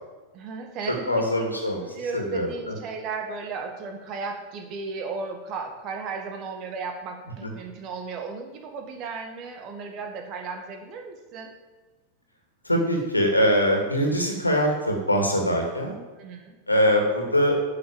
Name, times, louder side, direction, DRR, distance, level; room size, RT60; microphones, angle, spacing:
voice 1, 0.3-1.2 1.8-11.5 16.2-16.6, right 4 dB, 40° right, 5 dB, 1.9 m, -35 dB
voice 2, 0.9-1.8 2.1-2.8 7.4-7.5 12.6-16.0 16.7-17.6, equal, 85° left, 2 dB, 2.4 m, -23 dB
11.0 x 6.4 x 7.2 m, 1.3 s
figure-of-eight pair, 90°, 0 cm